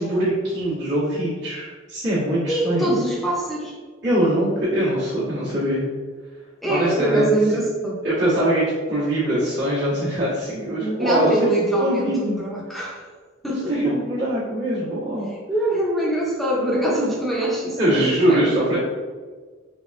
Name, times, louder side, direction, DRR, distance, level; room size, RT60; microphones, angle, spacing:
voice 1, 0.0-2.9 4.0-5.8 6.7-7.3 8.0-11.4 11.8-12.3 13.5-15.3 17.8-18.8, right 1 dB, 60° right, -12 dB, 1.2 m, -22 dB
voice 2, 2.5-3.7 6.6-8.0 11.0-13.0 13.4-13.7 15.5-18.5, right 1 dB, ahead, -5 dB, 0.6 m, -24 dB
3.4 x 3.3 x 2.5 m, 1.5 s
head